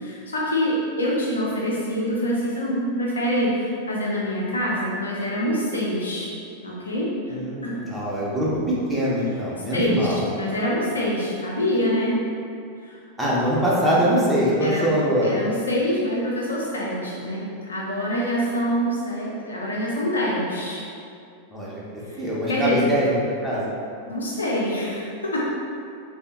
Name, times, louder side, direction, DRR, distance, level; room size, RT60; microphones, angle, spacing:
voice 1, 0.0-6.3 6.6-7.4 7.6-7.8 9.7-10.1 10.3-12.2 12.8-13.0 14.6-14.9 15.2-20.8 22.1-22.8 24.1-25.4, equal, 75° left, -4 dB, 0.6 m, -25 dB
voice 2, 7.3-10.3 13.2-15.4 21.5-21.8 22.2-23.2 23.4-23.7, equal, 5° right, -7 dB, 0.6 m, -23 dB
3.3 x 2.0 x 2.9 m, 2.4 s
figure-of-eight pair, 90°, 0 cm